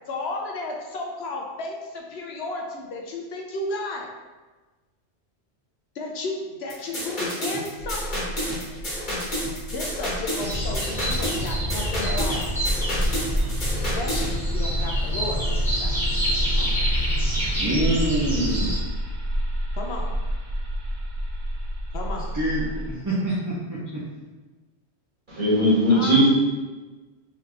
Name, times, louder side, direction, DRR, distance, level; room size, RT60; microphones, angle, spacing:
voice 1, 0.1-4.1 5.9-8.0 9.7-12.5 13.9-16.0 16.3-16.8 19.8-20.1 21.9-22.3 25.9-26.2, left 2 dB, 70° left, 1 dB, 0.9 m, -33 dB
sound 1, 6.7-14.3, equal, 45° left, 1.4 m, -30 dB
sound 2, 7.8-23.0, equal, 85° right, 1.1 m, -30 dB
Forest Ambience Danish, 10.4-18.8, equal, ahead, 1.0 m, -27 dB
voice 2, 17.6-18.7 22.3-24.0, right 1 dB, 20° right, -9 dB, 0.6 m, -26 dB
voice 3, 25.3-26.3, equal, 45° right, -10 dB, 1.9 m, -18 dB
3.7 x 3.4 x 3.3 m, 1.3 s
omnidirectional pair, 1.1 m